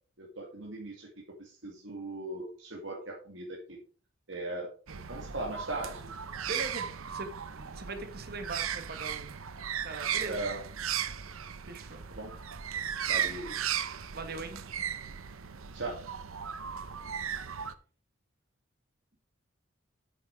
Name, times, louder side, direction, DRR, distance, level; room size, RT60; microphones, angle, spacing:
voice 1, 0.2-1.1 1.4-3.8 4.3-6.1 10.2-10.6 12.1-12.4 13.1-13.6 15.7-16.1, right 2 dB, 65° right, -1 dB, 2.1 m, -39 dB
sound 1, 4.9-17.7, right 8 dB, 90° right, 0.8 m, -36 dB
voice 2, 6.5-9.4 9.8-10.4 11.7-12.0 14.1-14.6, right 3 dB, 50° right, 6 dB, 1.8 m, -41 dB
8.7 x 7.0 x 4.7 m, 0.39 s
head